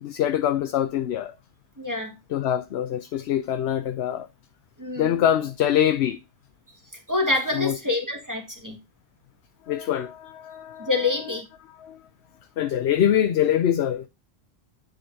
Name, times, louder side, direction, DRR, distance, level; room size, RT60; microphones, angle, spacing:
voice 1, 0.0-1.3 2.3-4.3 5.0-6.2 7.5-7.8 9.7-11.1 11.7-12.0 12.6-14.1, left 10 dB, 75° left, 0.9 m, -24 dB
voice 2, 1.8-2.2 4.8-5.2 7.1-8.8 10.8-11.5, left 3 dB, 15° right, 1.7 m, -26 dB
9.9 x 5.4 x 2.7 m
omnidirectional pair, 1.1 m